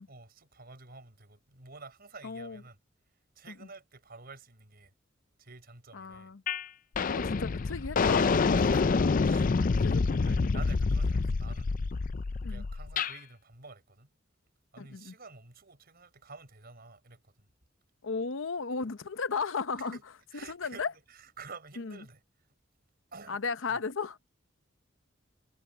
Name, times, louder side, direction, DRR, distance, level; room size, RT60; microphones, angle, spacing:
voice 1, 0.1-2.8 3.3-4.9 5.4-6.3 8.6-8.9 9.2-9.6 9.9-11.7 12.4-14.1 14.7-17.5 19.8-20.0 20.3-22.2 23.1-23.4 23.7-23.8, right 4 dB, 50° right, 4.7 m, -50 dB
voice 2, 2.2-2.6 3.5-3.6 5.9-6.4 7.0-9.1 9.8-10.0 12.4-12.6 14.8-15.1 18.0-20.0 20.5-20.9 21.8-22.0 23.3-24.2, left 4 dB, 80° left, 0.8 m, -35 dB
sound 1, 6.5-6.6 6.9-13.1, left 4 dB, 45° left, 0.5 m, -27 dB
head